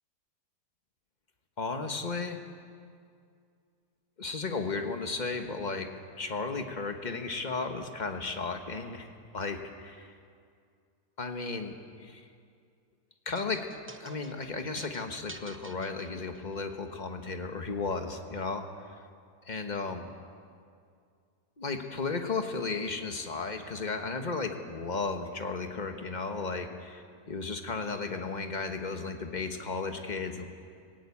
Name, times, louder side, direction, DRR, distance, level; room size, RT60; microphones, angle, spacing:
voice 1, 1.6-2.4 4.2-5.9 6.2-9.1 9.3-10.1 11.2-11.7 12.0-12.2 13.2-13.6 14.0-18.7 19.5-20.1 21.6-30.5, left 4 dB, 30° left, 5 dB, 1.3 m, -34 dB
sound 1, 13.4-16.7, right 2 dB, 20° right, 0.3 m, -49 dB
18.5 x 17.0 x 8.6 m, 2.3 s
omnidirectional pair, 1.7 m